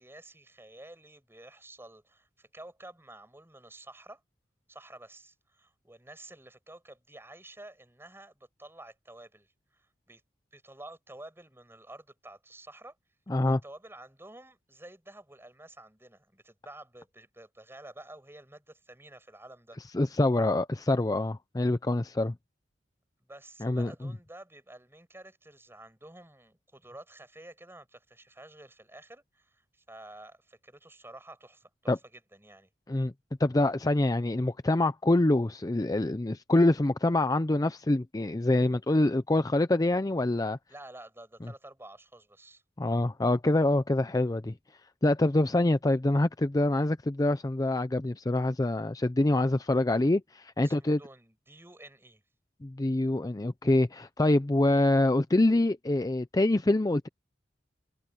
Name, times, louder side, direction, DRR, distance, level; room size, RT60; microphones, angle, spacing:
voice 1, 0.0-4.2 4.7-10.2 10.5-13.0 13.4-19.8 23.3-32.7 40.7-42.6 50.6-52.2, right 1 dB, 15° right, 6.9 m, -50 dB
voice 2, 13.3-13.6 19.9-22.3 23.6-23.9 31.9-32.0 32.9-33.1 33.4-40.6 42.8-44.5 45.0-51.0 52.6-57.1, left 2 dB, 20° left, 0.5 m, -25 dB
head